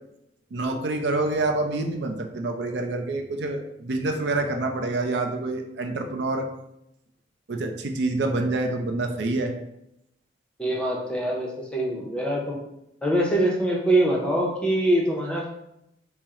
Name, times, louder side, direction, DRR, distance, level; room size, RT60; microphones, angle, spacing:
voice 1, 0.5-6.5 7.5-9.5, right 2 dB, 75° right, 5 dB, 0.4 m, -27 dB
voice 2, 10.6-12.6 13.0-15.5, right 1 dB, 5° left, -2 dB, 0.6 m, -24 dB
4.3 x 2.0 x 3.6 m, 0.82 s
head